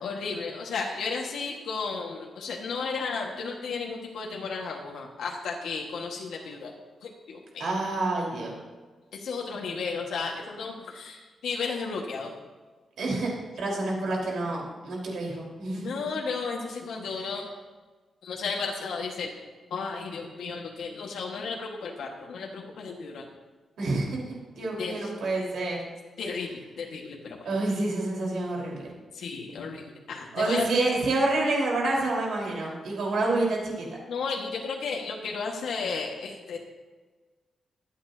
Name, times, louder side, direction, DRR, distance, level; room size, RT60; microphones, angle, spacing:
voice 1, 0.0-6.7 7.0-7.7 9.1-12.3 15.7-17.5 18.2-19.3 19.7-23.2 24.8-25.1 26.2-27.5 29.1-30.7 34.1-36.6, left 4 dB, 85° left, -1 dB, 1.6 m, -33 dB
voice 2, 7.6-8.6 13.0-13.3 13.6-15.9 23.8-24.2 24.6-25.8 27.4-28.9 30.3-33.9, right 2 dB, 70° right, -2 dB, 4.2 m, -28 dB
23.5 x 8.8 x 2.8 m, 1.4 s
wide cardioid pair, 160°, 0 cm